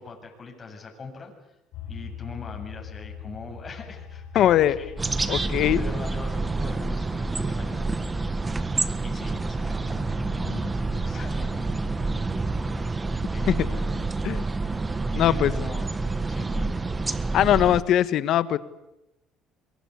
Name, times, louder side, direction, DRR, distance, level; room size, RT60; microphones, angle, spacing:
voice 1, 0.0-1.6 1.9-8.0 9.0-12.2 12.6-12.9 13.3-14.0 15.2-15.9 16.3-16.9, left 4 dB, 30° left, 1 dB, 8.0 m, -41 dB
sound 1, 1.7-12.6, left 6 dB, 80° left, 4.8 m, -43 dB
voice 2, 4.3-4.8 5.3-5.8 13.5-13.6 14.2-14.4 15.1-15.5 17.3-18.6, left 11 dB, 60° left, 14 dB, 1.4 m, -21 dB
sound 2, 5.0-17.8, right 3 dB, 20° right, 1.5 m, -28 dB
28.0 x 23.0 x 8.4 m, 0.91 s
cardioid pair, 100°, 0 cm